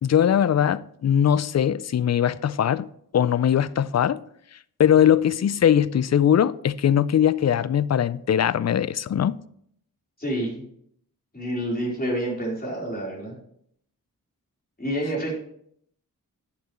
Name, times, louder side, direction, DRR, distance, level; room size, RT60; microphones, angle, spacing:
voice 1, 0.0-2.9 3.1-4.2 4.8-9.4, left 9 dB, 45° left, 0.4 m, -21 dB
voice 2, 10.2-10.6 11.3-13.4 14.8-15.3, right 1 dB, 25° left, 4.0 m, -28 dB
10.5 x 7.2 x 3.1 m
cardioid pair, 55°, 36 cm